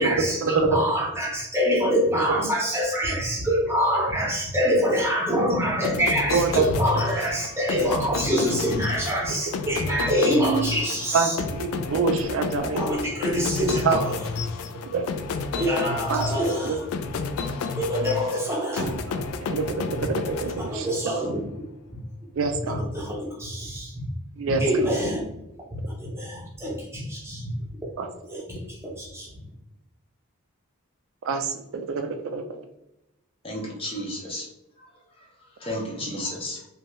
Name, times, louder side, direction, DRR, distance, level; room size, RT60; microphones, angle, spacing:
voice 1, 0.0-11.4 12.7-14.2 15.5-16.9 17.7-19.0 20.5-21.4 22.6-24.0 24.6-25.2 25.7-27.5 28.3-29.3, equal, 10° right, -4 dB, 0.7 m, -25 dB
sound 1, 5.8-21.1, left 4 dB, 70° left, 0.3 m, -31 dB
voice 2, 6.3-6.6 9.5-9.6 11.1-12.8 13.8-14.0 14.9-15.0 16.1-16.3 16.6-16.8 19.5-21.2 22.4-22.8 24.4-24.8 28.0-28.1 31.3-32.4 36.0-36.1, right 4 dB, 60° right, 6 dB, 0.3 m, -26 dB
voice 3, 33.4-34.5 35.6-36.6, left 1 dB, 25° left, -1 dB, 0.6 m, -32 dB
2.7 x 2.3 x 3.0 m, 0.85 s
head